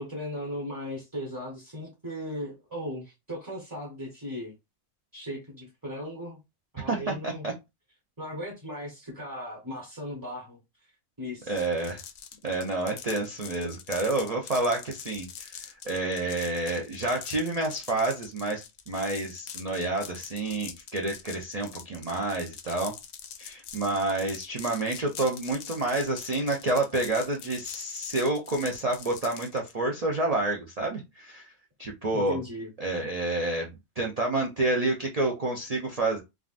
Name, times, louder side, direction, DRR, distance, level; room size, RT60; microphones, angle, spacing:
voice 1, 0.0-4.5 5.1-6.4 6.7-7.4 8.2-10.6 11.2-11.6 32.1-32.7, equal, 15° right, 0.7 m, -37 dB
voice 2, 6.9-7.5 11.5-12.0 12.4-23.0 23.4-31.5 31.8-32.4 32.8-33.7 34.0-36.2, right 2 dB, 90° right, 0.3 m, -29 dB
sound 1, 11.5-29.7, left 8 dB, 65° left, 0.7 m, -44 dB
3.6 x 2.3 x 2.5 m
omnidirectional pair, 1.5 m